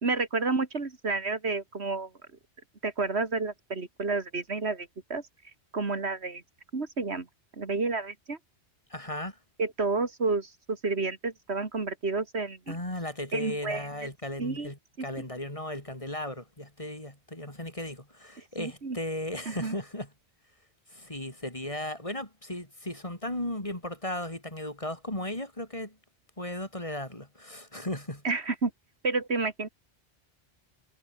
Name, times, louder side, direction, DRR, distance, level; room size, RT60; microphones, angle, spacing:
voice 1, 0.0-2.1 2.8-5.2 5.7-6.4 6.7-7.3 7.6-8.4 9.6-12.8 13.3-13.9 14.4-14.7 15.0-15.3 18.6-19.0 19.5-19.7 28.2-28.7 29.0-29.7, right 3 dB, 70° right, 2.6 m, -30 dB
voice 2, 8.9-9.4 12.7-20.1 20.9-26.0 26.4-28.2, left 1 dB, 30° left, 4.1 m, -36 dB
omnidirectional pair, 1.1 m